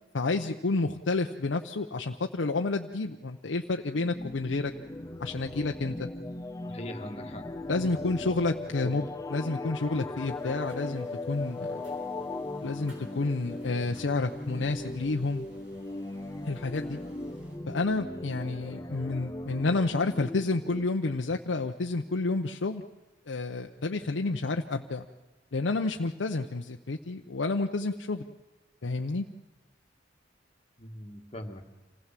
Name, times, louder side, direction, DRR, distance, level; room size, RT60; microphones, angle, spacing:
voice 1, 0.1-4.7 5.2-6.1 7.7-11.8 12.6-15.5 16.4-17.0 17.7-22.8 23.3-25.1 25.5-28.3 28.8-29.3, left 3 dB, 90° left, 4 dB, 0.7 m, -30 dB
sound 1, 3.9-20.9, left 2 dB, 20° left, 0.8 m, -38 dB
voice 2, 6.6-7.4 8.8-8.9 30.8-31.6, left 1 dB, 35° left, 4 dB, 1.7 m, -40 dB
sound 2, 10.3-17.6, right 1 dB, 90° right, 5.9 m, -56 dB
26.0 x 16.0 x 7.5 m, 1.2 s
head